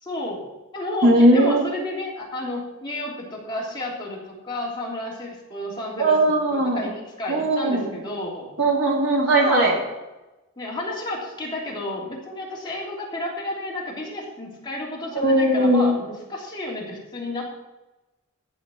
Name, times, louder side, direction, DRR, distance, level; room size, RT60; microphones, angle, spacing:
voice 1, 0.0-0.4 0.7-6.1 6.5-8.5 9.4-9.8 10.6-17.6, left 1 dB, 20° left, -4 dB, 3.2 m, -31 dB
voice 2, 1.0-1.6 6.0-6.9 7.3-7.9 8.6-9.8 15.1-15.9, right 1 dB, 70° right, -2 dB, 3.1 m, -18 dB
15.0 x 5.2 x 7.8 m, 1.0 s
head